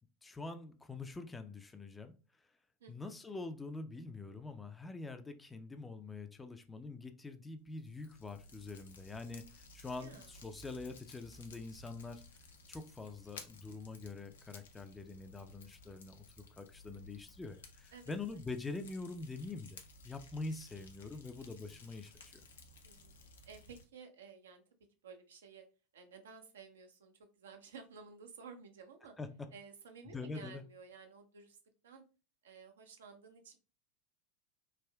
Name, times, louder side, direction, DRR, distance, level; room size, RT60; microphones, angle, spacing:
voice 1, 0.2-2.1 2.9-12.2 12.7-16.2 16.6-22.4 29.2-29.3 30.1-30.6, left 3 dB, 15° left, 0.4 m, -45 dB
Fire, 7.7-23.8, left 3 dB, 75° left, 0.5 m, -57 dB
voice 2, 10.0-10.3 17.9-18.1 22.8-23.2 23.4-24.6 25.0-25.6 25.9-29.1 29.5-31.6 31.8-32.0 32.4-33.6, right 5 dB, 75° right, 0.5 m, -54 dB
3.4 x 2.4 x 2.2 m
figure-of-eight pair, 80°, 0 cm